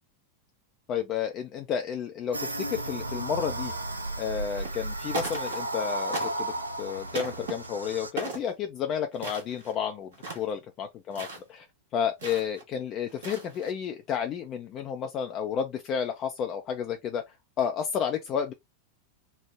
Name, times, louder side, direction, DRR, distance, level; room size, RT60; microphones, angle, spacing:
voice 1, 0.9-3.7 4.2-6.5 6.8-11.6 11.9-17.2 17.6-18.5, left 8 dB, 35° left, 0.4 m, -31 dB
sound 1, 2.3-8.1, right 1 dB, 80° right, 0.4 m, -34 dB
sound 2, 4.5-4.9 5.1-5.8 6.1-6.6 7.1-7.5 8.2-8.5 9.1-9.8 10.1-10.5 11.1-11.4 12.2-12.6 13.1-13.7, right 3 dB, 60° right, 1.2 m, -37 dB
3.3 x 2.1 x 3.2 m
figure-of-eight pair, 90°, 0 cm